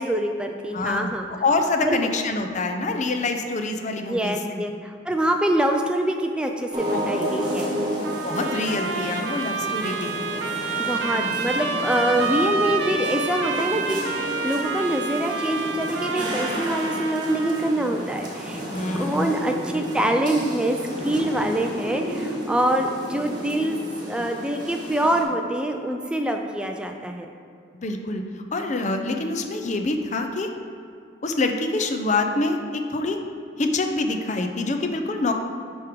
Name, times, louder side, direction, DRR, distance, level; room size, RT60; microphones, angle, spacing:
voice 1, 0.0-1.3 1.8-2.1 4.1-7.8 10.8-18.6 19.0-20.8 21.0-27.3, right 1 dB, 5° right, 3 dB, 0.3 m, -25 dB
voice 2, 0.7-4.7 6.9-7.0 7.4-7.5 8.2-10.2 11.1-11.3 18.7-19.7 27.7-30.5 31.2-33.2 33.6-35.3, left 2 dB, 40° left, 5 dB, 0.6 m, -26 dB
sound 1, 6.7-25.2, equal, 25° right, 1.3 m, -32 dB
Trumpet, 8.0-17.7, right 3 dB, 75° right, 0.7 m, -28 dB
10.5 x 3.6 x 4.6 m, 2.4 s
head